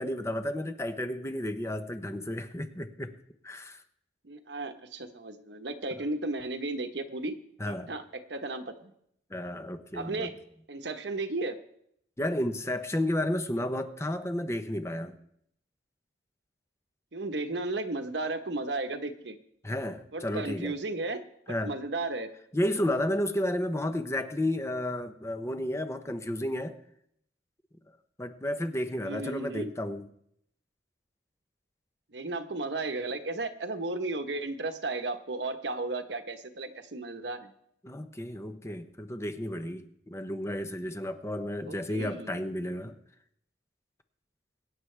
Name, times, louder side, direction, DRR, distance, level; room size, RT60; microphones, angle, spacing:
voice 1, 0.0-3.1 3.4-3.8 7.6-7.9 9.3-10.3 12.2-15.2 19.6-20.7 21.5-21.7 22.5-26.8 28.2-30.1 37.8-43.0, left 1 dB, 15° left, 8 dB, 0.8 m, -32 dB
voice 2, 4.2-7.4 7.7-8.9 9.9-10.4 10.7-11.6 17.1-19.4 20.1-21.2 21.5-22.3 29.0-29.7 32.1-37.5 41.7-42.4, right 2 dB, 70° right, 7 dB, 1.1 m, -34 dB
23.0 x 9.7 x 3.3 m, 0.73 s
head